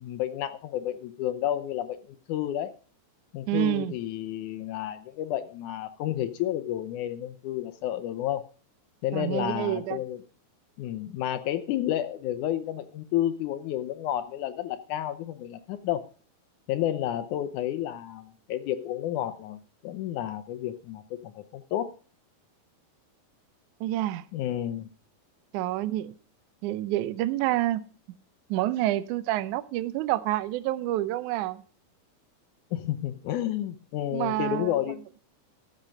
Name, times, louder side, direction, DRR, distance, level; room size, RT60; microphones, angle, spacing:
voice 1, 0.0-2.7 3.3-8.5 9.0-10.2 10.8-16.0 16.7-21.9 24.3-24.9 32.7-35.0, left 12 dB, 80° left, 11 dB, 1.8 m, -31 dB
voice 2, 3.5-3.9 9.1-10.0 23.8-24.3 25.5-26.2 26.6-27.8 28.5-31.6 34.1-34.7, right 15 dB, 85° right, 15 dB, 1.8 m, -28 dB
13.5 x 7.5 x 5.1 m, 0.37 s
omnidirectional pair, 4.2 m